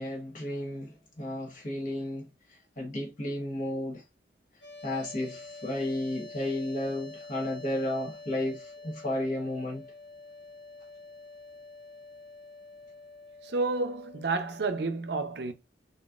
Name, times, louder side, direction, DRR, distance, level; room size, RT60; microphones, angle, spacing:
voice 1, 0.0-4.0 4.8-9.9, left 1 dB, 45° left, 1.2 m, -33 dB
sound 1, 4.6-14.7, left 3 dB, 80° left, 1.3 m, -47 dB
voice 2, 13.4-15.5, right 3 dB, 60° right, 0.6 m, -30 dB
4.0 x 3.9 x 2.4 m
head